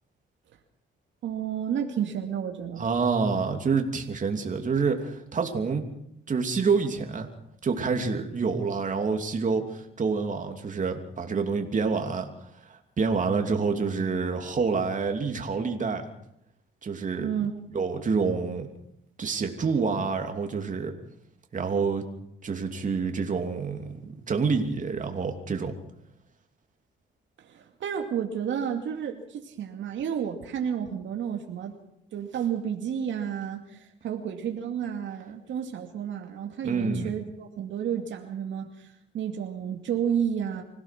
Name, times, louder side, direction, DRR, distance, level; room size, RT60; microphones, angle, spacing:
voice 1, 1.2-2.8 17.2-17.5 27.4-31.7 32.1-40.6, right 8 dB, 70° right, 3 dB, 2.5 m, -31 dB
voice 2, 2.8-5.8 6.3-7.3 7.6-12.3 12.7-16.0 16.8-17.3 17.7-18.7 19.2-20.9 21.5-22.0 22.4-25.7 36.6-37.1, right 5 dB, 40° right, 4 dB, 3.0 m, -27 dB
25.5 x 16.5 x 6.1 m, 0.78 s
cardioid pair, 90°, 20 cm